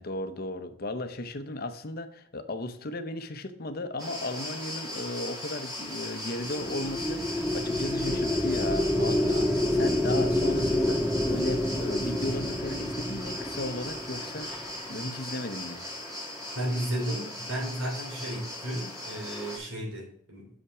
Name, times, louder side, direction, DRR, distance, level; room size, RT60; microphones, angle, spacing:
voice 1, 0.0-14.5 14.9-15.8, left 2 dB, 50° left, 9 dB, 0.7 m, -35 dB
sound 1, 4.0-19.6, left 1 dB, 15° right, 2.3 m, -38 dB
sound 2, 6.4-14.9, left 1 dB, 10° left, 0.4 m, -28 dB
voice 2, 16.5-20.6, right 1 dB, 80° right, -1 dB, 3.3 m, -33 dB
6.6 x 5.6 x 4.8 m, 0.64 s
head